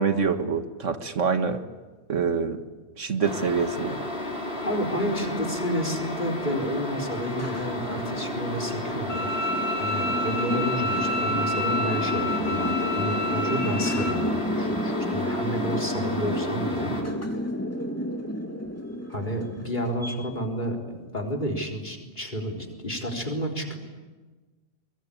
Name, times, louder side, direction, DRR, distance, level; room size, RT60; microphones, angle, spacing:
voice 1, 0.0-1.6 2.1-2.6 3.0-4.0, right 5 dB, 80° right, 8 dB, 1.9 m, -25 dB
sound 1, 3.2-17.0, left 1 dB, 55° left, 4.7 m, -33 dB
sound 2, 4.3-20.2, left 1 dB, 10° left, 2.6 m, -32 dB
voice 2, 4.6-9.3 9.8-16.9 19.1-23.8, equal, 40° left, 1 dB, 4.1 m, -30 dB
Bowed string instrument, 9.1-14.1, left 1 dB, 75° left, 5.3 m, -29 dB
24.5 x 23.5 x 8.5 m, 1.3 s
omnidirectional pair, 1.3 m